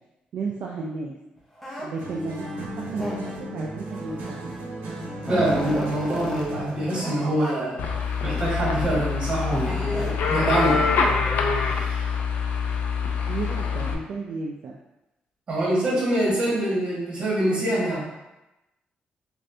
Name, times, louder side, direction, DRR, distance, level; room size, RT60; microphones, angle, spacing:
voice 1, 0.3-1.2 1.8-4.5 13.2-14.8, right 4 dB, 60° right, -2 dB, 0.3 m, -33 dB
sound 1, 1.6-1.9 2.9-3.5 4.5-4.6 4.9-6.5 7.0-7.1 7.4-7.5 8.2-8.7 9.5-11.4, equal, 10° left, 0.6 m, -32 dB
sound 2, 2.0-7.3, equal, 90° right, 0.7 m, -35 dB
voice 2, 5.3-7.8 8.2-10.8 11.6-12.1 15.5-18.0, right 1 dB, 35° right, -7 dB, 1.4 m, -25 dB
sound 3, 7.8-13.9, left 5 dB, 65° left, 0.3 m, -25 dB
3.2 x 2.5 x 2.6 m, 0.96 s
cardioid pair, 145°, 3 cm